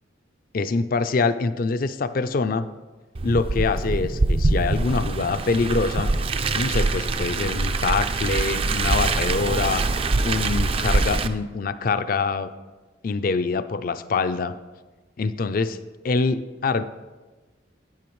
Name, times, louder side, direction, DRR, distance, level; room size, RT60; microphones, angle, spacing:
voice 1, 0.5-2.7 3.2-6.1 6.5-9.8 10.2-12.5 13.0-14.5 15.2-15.8 16.0-16.8, left 4 dB, 45° left, 12 dB, 0.4 m, -24 dB
Car, 3.1-11.3, right 3 dB, 30° right, 0.4 m, -24 dB
12.0 x 9.2 x 3.1 m, 1.2 s
head